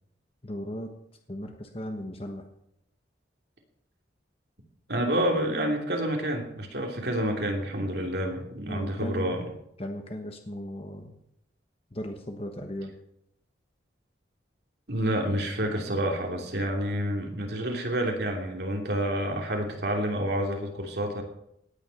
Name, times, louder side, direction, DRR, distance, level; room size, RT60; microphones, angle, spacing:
voice 1, 0.4-0.9 1.3-2.4 8.7-9.3 9.8-11.2 11.9-12.9, equal, 30° left, 4 dB, 1.2 m, -36 dB
voice 2, 4.9-9.5 14.9-21.2, right 1 dB, 60° right, 2 dB, 2.9 m, -28 dB
18.0 x 9.8 x 5.7 m, 0.77 s
head